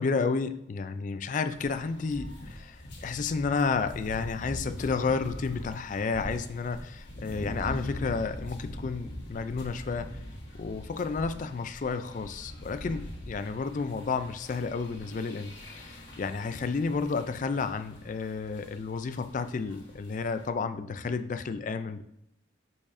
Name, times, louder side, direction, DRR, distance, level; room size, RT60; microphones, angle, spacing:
voice 1, 0.0-10.1 10.5-22.0, left 4 dB, 40° left, 10 dB, 0.3 m, -31 dB
sound 1, 1.5-20.5, equal, 65° left, 1.4 m, -43 dB
6.2 x 6.0 x 2.6 m, 0.79 s
head